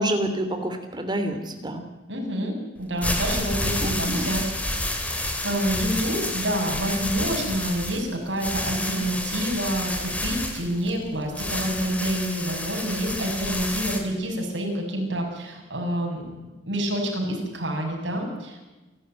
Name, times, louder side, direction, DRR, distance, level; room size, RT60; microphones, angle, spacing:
voice 1, 0.0-1.8 3.8-4.3, right 1 dB, 25° right, 6 dB, 3.0 m, -28 dB
voice 2, 2.1-5.2 5.4-16.2 16.6-18.7, equal, 80° right, 1 dB, 6.7 m, -28 dB
sound 1, 2.8-14.0, left 1 dB, 10° left, 2.9 m, -29 dB
28.0 x 12.5 x 9.0 m, 1.1 s
head